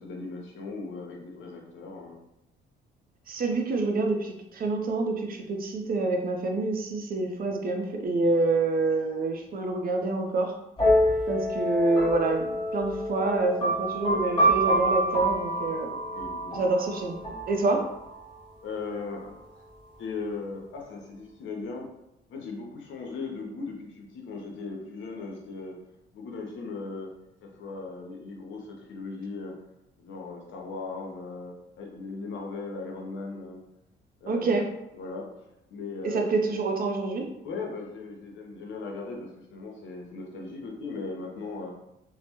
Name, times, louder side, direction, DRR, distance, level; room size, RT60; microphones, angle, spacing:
voice 1, 0.0-2.2 16.1-16.8 18.6-19.3 19.6-19.7 20.0-21.9 22.3-25.8 26.1-27.1 27.4-29.5 30.0-33.6 34.2-35.3 35.7-36.4 37.4-41.7, left 3 dB, 75° left, 0 dB, 0.6 m, -38 dB
voice 2, 3.3-10.5 11.3-15.9 16.5-17.2 17.5-17.8 34.2-34.7 36.0-37.3, right 3 dB, 50° right, 3 dB, 0.4 m, -27 dB
sound 1, 10.8-18.3, equal, 25° left, 1.1 m, -27 dB
2.2 x 2.0 x 2.9 m, 0.85 s
cardioid pair, 90°, 20 cm